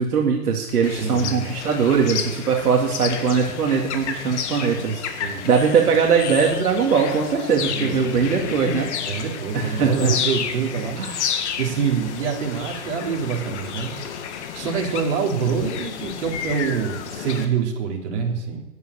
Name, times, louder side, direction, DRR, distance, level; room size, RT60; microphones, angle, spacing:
voice 1, 0.0-9.2 9.5-10.2 11.0-11.2, right 6 dB, 70° right, 0 dB, 2.4 m, -21 dB
sound 1, 0.8-17.4, left 7 dB, 45° left, 2.0 m, -31 dB
voice 2, 1.0-1.5 5.2-5.5 7.6-8.3 9.1-11.2 11.6-13.9 14.5-18.6, right 6 dB, 45° right, 0 dB, 3.6 m, -26 dB
12.5 x 9.8 x 8.7 m, 1.0 s
hypercardioid pair, 140°, 47 cm